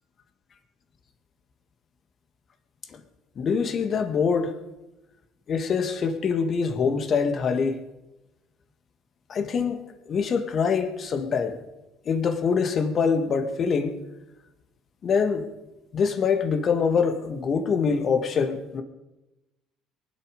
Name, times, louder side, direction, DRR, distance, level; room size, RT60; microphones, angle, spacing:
voice 1, 3.4-4.5 5.5-7.8 9.3-9.8 10.1-11.6 12.1-14.0 15.0-15.5 15.9-18.8, left 5 dB, 45° left, 2.1 m, -24 dB
23.0 x 8.4 x 5.4 m
hypercardioid pair, 65°, 0 cm